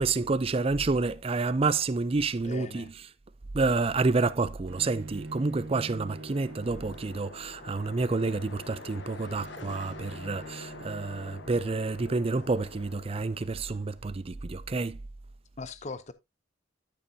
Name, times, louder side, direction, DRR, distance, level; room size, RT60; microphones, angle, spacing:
voice 1, 0.0-2.9 3.5-15.0, right 3 dB, 30° right, 0.5 m, -29 dB
voice 2, 2.4-2.9 15.6-16.1, left 3 dB, 35° left, 0.6 m, -39 dB
Bowed string instrument, 4.7-11.7, right 2 dB, 80° right, 1.1 m, -45 dB
sound 1, 5.1-14.2, left 3 dB, 65° left, 1.2 m, -47 dB
12.0 x 6.7 x 2.7 m
head